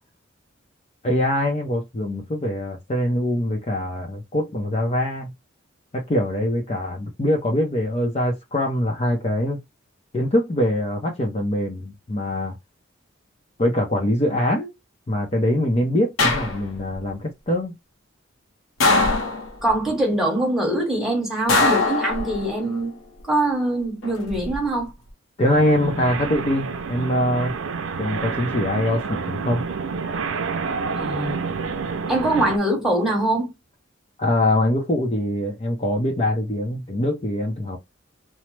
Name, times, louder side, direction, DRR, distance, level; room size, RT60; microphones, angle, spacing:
voice 1, 1.0-5.3 5.9-9.6 10.1-12.6 13.6-14.7 15.1-17.7 25.4-27.5 28.0-29.6 34.2-37.8, left 1 dB, 30° left, 0.6 m, -23 dB
sound 1, 16.2-17.0 18.8-19.7 21.5-22.6 24.0-24.6, left 3 dB, 85° left, 0.8 m, -21 dB
voice 2, 19.6-22.9 23.3-24.9 30.9-31.4 32.1-33.5, right 1 dB, 5° right, 1.2 m, -23 dB
sound 2, 25.5-32.6, right 5 dB, 75° right, 0.5 m, -28 dB
3.0 x 2.0 x 3.2 m
head